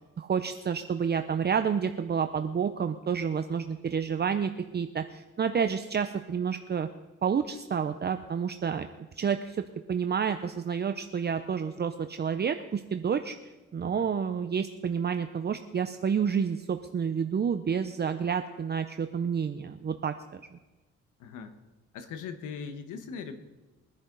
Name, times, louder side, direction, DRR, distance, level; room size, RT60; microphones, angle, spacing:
voice 1, 0.2-6.9 7.2-8.9 9.2-9.6 9.9-13.4 13.7-20.6, right 7 dB, 35° right, 8 dB, 0.7 m, -29 dB
voice 2, 21.2-21.5 21.9-23.4, left 6 dB, 90° left, 8 dB, 1.5 m, -40 dB
22.5 x 10.5 x 4.0 m, 1.2 s
cardioid pair, 90°, 30 cm